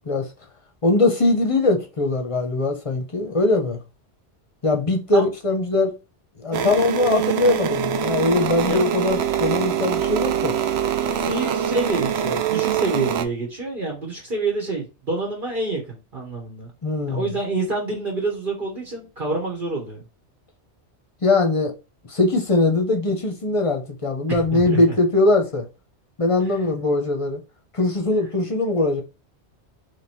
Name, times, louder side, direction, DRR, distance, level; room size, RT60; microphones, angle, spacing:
voice 1, 0.8-3.8 4.6-5.9 6.4-10.6 16.8-17.3 21.2-21.7 22.1-25.6 26.2-27.4 27.7-29.0, left 2 dB, 35° left, 0.8 m, -21 dB
sound 1, 6.5-13.2, right 8 dB, 70° right, 0.8 m, -24 dB
voice 2, 11.2-16.7 17.1-20.0 24.3-25.0 26.4-26.6, right 3 dB, 50° right, 1.4 m, -27 dB
3.6 x 3.3 x 4.3 m
omnidirectional pair, 1.1 m